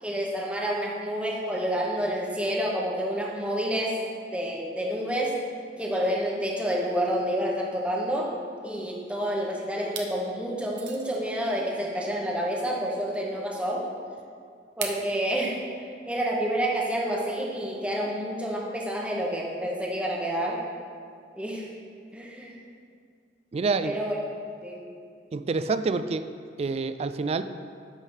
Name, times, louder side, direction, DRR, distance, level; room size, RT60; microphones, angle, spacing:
voice 1, 0.0-3.9 4.3-5.4 5.8-8.3 8.6-13.9 14.8-15.6 16.1-20.6 21.4-21.7 22.1-22.6 23.8-24.2 24.6-24.9, equal, 5° right, -3 dB, 1.0 m, -29 dB
sound 1, 9.0-9.4 9.8-10.2 10.7-11.2 12.7-12.8 14.8-15.1, right 6 dB, 85° right, 0.9 m, -36 dB
voice 2, 23.5-23.9 25.3-26.2 26.6-27.4, right 4 dB, 35° right, 11 dB, 0.3 m, -27 dB
11.0 x 3.6 x 6.3 m, 2.2 s
head